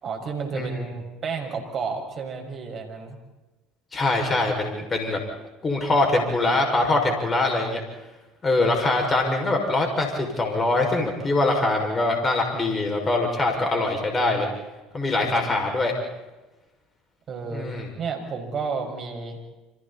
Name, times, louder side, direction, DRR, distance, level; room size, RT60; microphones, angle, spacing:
voice 1, 0.0-3.2 15.2-15.7 17.3-17.7 18.0-19.5, right 5 dB, 45° right, 4 dB, 6.0 m, -32 dB
voice 2, 0.5-0.8 3.9-5.2 5.6-7.8 8.4-14.5 14.9-15.9 17.5-17.9, left 2 dB, 30° left, 2 dB, 6.0 m, -23 dB
29.5 x 26.5 x 4.3 m, 1.1 s
hypercardioid pair, 70°, 0 cm